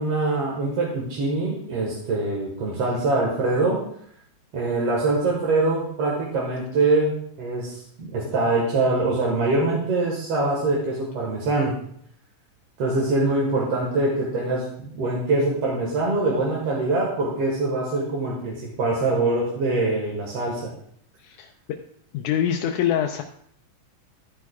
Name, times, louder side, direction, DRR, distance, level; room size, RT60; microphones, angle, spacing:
voice 1, 0.0-3.8 4.5-7.1 7.4-11.8 12.8-20.7, right 2 dB, 55° right, -3 dB, 2.2 m, -24 dB
voice 2, 22.1-23.2, left 9 dB, 80° left, 3 dB, 1.9 m, -24 dB
12.5 x 9.8 x 2.3 m, 0.65 s
omnidirectional pair, 3.8 m